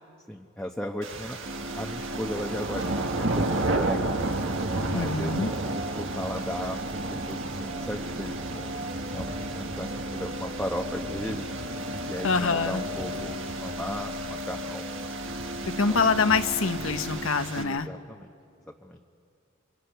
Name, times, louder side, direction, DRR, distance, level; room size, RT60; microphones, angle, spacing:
voice 1, 0.3-1.4 1.7-4.4 4.9-11.5 12.0-14.9 15.6-16.1 17.5-18.3 18.8-19.0, equal, 5° left, 0 dB, 1.0 m, -36 dB
sound 1, 1.0-17.6, right 2 dB, 70° right, 1.6 m, -33 dB
sound 2, 1.4-17.3, left 1 dB, 45° right, 1.1 m, -37 dB
voice 2, 4.9-5.5 12.2-12.8 15.8-17.9, left 4 dB, 85° left, 9 dB, 1.1 m, -25 dB
29.0 x 26.5 x 5.8 m, 2.4 s
head